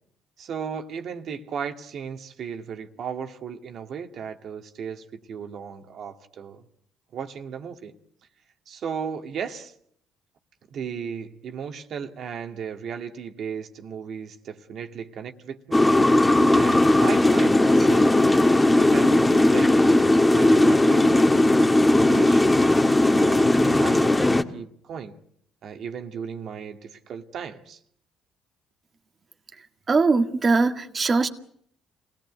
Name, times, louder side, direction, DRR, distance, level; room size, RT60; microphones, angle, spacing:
voice 1, 0.4-6.6 7.1-7.9 8.7-9.7 10.7-15.8 16.5-18.2 18.7-19.8 20.3-22.6 23.1-25.2 25.6-27.8, right 7 dB, 60° right, 6 dB, 1.9 m, -35 dB
sound 1, 15.7-24.4, left 1 dB, 15° left, 1.9 m, -18 dB
voice 2, 29.9-31.3, right 4 dB, 35° right, 6 dB, 1.8 m, -21 dB
26.5 x 17.5 x 9.3 m, 0.69 s
supercardioid pair, 65°, 0 cm